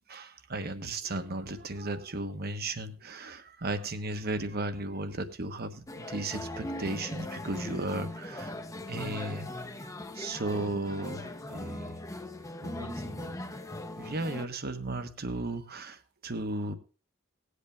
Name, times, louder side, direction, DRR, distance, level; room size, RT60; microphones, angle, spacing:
voice 1, 0.1-8.5 8.9-9.5 10.1-12.0 12.6-13.3 14.0-16.8, right 2 dB, 50° right, 10 dB, 1.2 m, -35 dB
sound 1, 5.9-14.5, left 1 dB, 15° left, 0.8 m, -39 dB
19.0 x 8.2 x 3.4 m, 0.35 s
head